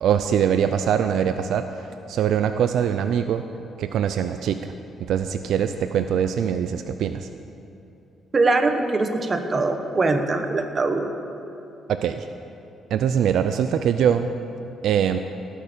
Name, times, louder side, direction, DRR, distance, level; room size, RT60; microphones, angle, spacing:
voice 1, 0.0-3.4 3.8-4.7 5.0-7.3 11.9-12.3 12.9-14.3 14.8-15.2, right 8 dB, 75° right, 9 dB, 0.4 m, -23 dB
voice 2, 8.3-11.1, right 3 dB, 35° right, 6 dB, 1.2 m, -22 dB
17.5 x 6.5 x 6.9 m, 2.7 s
cardioid pair, 90°, 0 cm